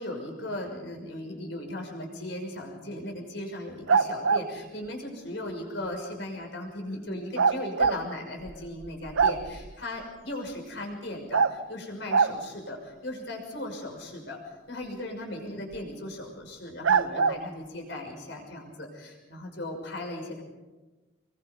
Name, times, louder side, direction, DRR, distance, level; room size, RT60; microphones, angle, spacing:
voice 1, 0.0-20.4, left 1 dB, 60° left, 2 dB, 6.1 m, -37 dB
sound 1, 3.9-4.5 7.4-8.0 8.5-8.6 8.8-9.7 11.3-11.6 12.1-12.4 15.7-15.8 16.8-17.4, right 5 dB, 85° right, 0.8 m, -23 dB
26.5 x 22.5 x 5.4 m, 1.2 s
head